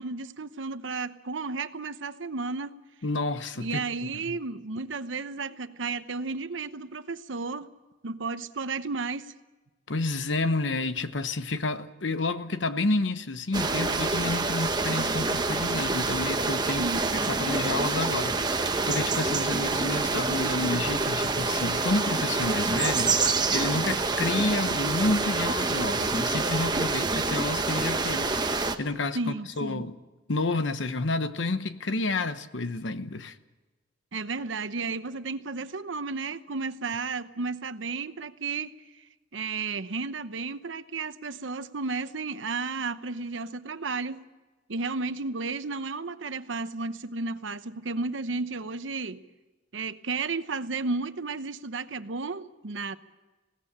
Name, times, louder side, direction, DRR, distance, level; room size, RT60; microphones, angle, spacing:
voice 1, 0.0-2.7 3.6-7.7 8.0-9.3 16.7-17.2 29.1-29.9 34.1-38.7 39.3-44.2 44.7-49.3 49.7-53.0, right 4 dB, 90° right, 0.9 m, -33 dB
voice 2, 3.0-3.8 4.2-4.4 9.9-23.1 23.5-29.9 30.3-33.3, left 2 dB, 75° left, 1.0 m, -30 dB
sound 1, 13.5-28.7, right 3 dB, 25° right, 1.1 m, -27 dB
20.5 x 17.5 x 8.7 m
head